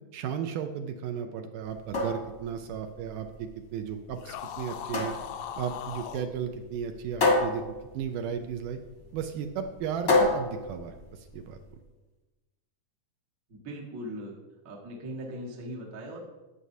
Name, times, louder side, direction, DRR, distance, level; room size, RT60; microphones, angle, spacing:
voice 1, 0.1-5.2 5.6-8.8 9.1-11.6, right 7 dB, 80° right, 6 dB, 2.0 m, -35 dB
sound 1, 1.6-11.6, left 2 dB, 50° left, 1.0 m, -30 dB
sound 2, 4.2-6.3, left 9 dB, 80° left, 1.8 m, -39 dB
voice 2, 13.6-14.3 14.6-16.2, equal, 55° right, -2 dB, 0.9 m, -39 dB
11.0 x 7.9 x 2.7 m, 1.1 s
omnidirectional pair, 3.9 m